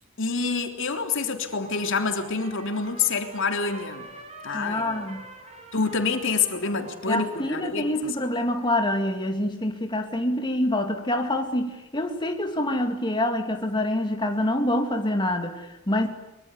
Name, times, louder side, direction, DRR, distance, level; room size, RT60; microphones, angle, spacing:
voice 1, 0.2-4.1 4.4-5.1 5.7-8.1, left 4 dB, 65° left, 6 dB, 3.5 m, -27 dB
Trumpet, 1.5-8.2, right 2 dB, 35° right, 6.3 m, -46 dB
voice 2, 4.5-5.3 7.1-16.1, left 1 dB, 20° left, 4 dB, 2.4 m, -26 dB
24.0 x 24.0 x 9.8 m, 1.0 s
head